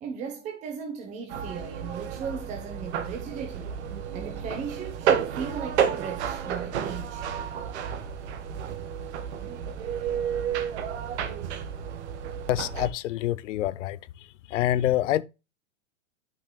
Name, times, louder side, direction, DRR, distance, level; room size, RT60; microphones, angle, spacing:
voice 1, 0.0-3.7 4.1-7.3, right 6 dB, 20° right, 0.9 m, -37 dB
sound 1, 1.3-12.9, right 8 dB, 60° right, 1.5 m, -31 dB
voice 2, 12.5-14.0 14.5-15.2, left 13 dB, 75° left, 0.7 m, -26 dB
11.5 x 5.6 x 2.3 m
supercardioid pair, 165°, 37 cm